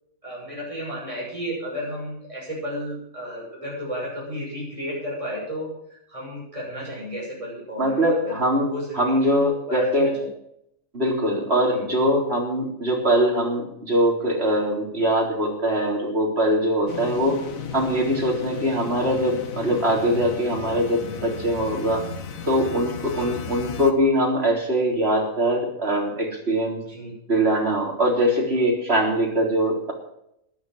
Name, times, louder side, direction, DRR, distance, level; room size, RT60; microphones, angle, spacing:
voice 1, 0.2-8.4 8.6-10.3 11.7-11.9 23.1-23.7 26.8-27.1, equal, 25° right, -5 dB, 6.6 m, -33 dB
voice 2, 7.8-8.7 8.9-10.1 10.9-17.4 17.7-22.0 22.5-26.8 27.3-29.9, equal, 50° right, -1 dB, 4.2 m, -22 dB
sound 1, 16.9-23.9, left 5 dB, 90° left, 1.7 m, -35 dB
13.5 x 11.0 x 6.3 m, 0.76 s
omnidirectional pair, 1.4 m